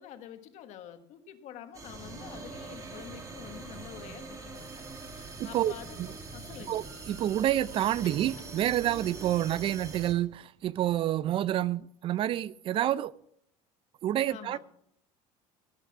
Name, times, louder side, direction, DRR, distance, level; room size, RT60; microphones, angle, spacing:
voice 1, 0.0-4.8 5.1-6.9 8.0-8.2 14.3-14.6, left 10 dB, 60° left, 1.5 m, -47 dB
sound 1, 1.7-10.1, right 3 dB, 25° right, 2.1 m, -43 dB
Car, 4.5-9.9, right 3 dB, 60° right, 6.0 m, -59 dB
voice 2, 5.4-5.7 6.0-6.1 6.7-13.1 14.0-14.6, right 12 dB, 40° right, 0.4 m, -28 dB
18.0 x 6.6 x 6.1 m
cardioid pair, 145°, 13 cm